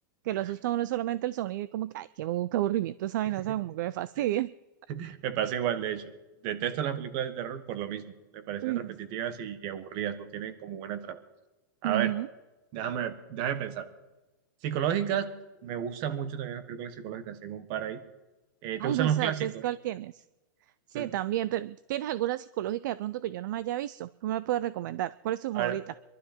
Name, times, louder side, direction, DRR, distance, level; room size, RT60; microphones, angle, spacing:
voice 1, 0.2-4.5 8.6-9.0 11.8-12.3 18.8-20.2 20.9-25.8, right 14 dB, 60° right, 18 dB, 0.4 m, -31 dB
voice 2, 4.9-6.1 6.4-11.2 11.8-12.1 12.7-13.9 14.6-15.3 15.6-18.0 18.6-19.6 20.9-21.1 25.5-25.8, right 9 dB, 40° right, 11 dB, 1.4 m, -32 dB
23.0 x 12.5 x 4.4 m, 1.1 s
supercardioid pair, 150°, 12 cm